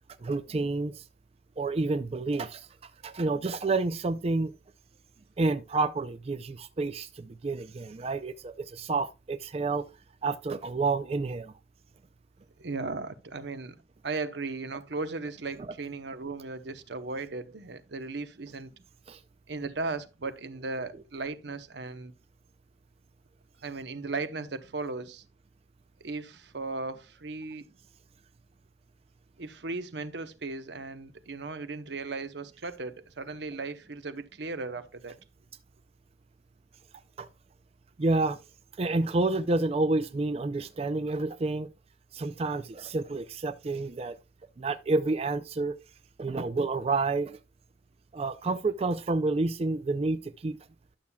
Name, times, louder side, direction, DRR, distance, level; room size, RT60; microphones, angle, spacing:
voice 1, 0.2-1.0 1.6-2.7 3.0-4.5 5.4-9.9 10.2-11.5 19.1-19.2 37.2-37.3 38.0-38.4 38.8-41.7 42.1-44.2 44.6-45.7 46.2-47.4 48.1-50.6, right 3 dB, 35° right, 0.4 m, -29 dB
voice 2, 12.6-13.8 14.0-18.7 19.5-22.1 23.6-25.2 26.0-27.7 29.4-35.2, right 3 dB, 75° right, 0.8 m, -36 dB
11.5 x 7.0 x 2.3 m
head